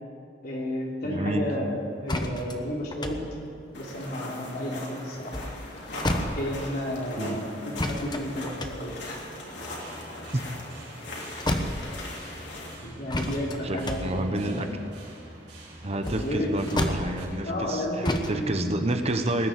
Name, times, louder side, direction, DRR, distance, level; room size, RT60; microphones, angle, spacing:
voice 1, 0.4-3.2 3.7-5.4 6.2-9.2 12.6-14.8 16.0-16.6 17.4-18.6, equal, 60° left, -3 dB, 3.3 m, -32 dB
voice 2, 1.0-1.5 7.2-7.4 10.3-10.4 13.6-14.7 15.8-19.5, right 1 dB, 35° right, 6 dB, 0.9 m, -29 dB
sound 1, 2.1-4.7 5.1-6.9 7.7-11.1 11.4-12.4 13.1-17.7 18.0-18.4, left 1 dB, 25° left, 1.0 m, -32 dB
sound 2, 3.7-12.8, left 1 dB, 80° left, 3.1 m, -40 dB
sound 3, 9.5-17.3, right 1 dB, 65° right, 5.0 m, -46 dB
20.5 x 6.9 x 9.3 m, 2.4 s
head